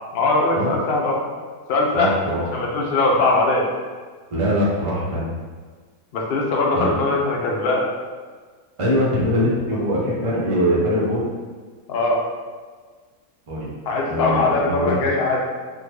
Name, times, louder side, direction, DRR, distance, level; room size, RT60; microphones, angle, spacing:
voice 1, 0.1-1.2 1.7-2.1 2.5-3.7 6.1-7.9 11.9-12.3 13.9-15.4, left 2 dB, 70° left, -1 dB, 0.5 m, -20 dB
voice 2, 1.9-2.4 4.3-5.2 6.7-6.9 8.8-11.3 13.5-13.7 14.0-15.0, equal, 35° right, -6 dB, 0.5 m, -22 dB
3.6 x 2.1 x 3.1 m, 1.5 s
omnidirectional pair, 1.6 m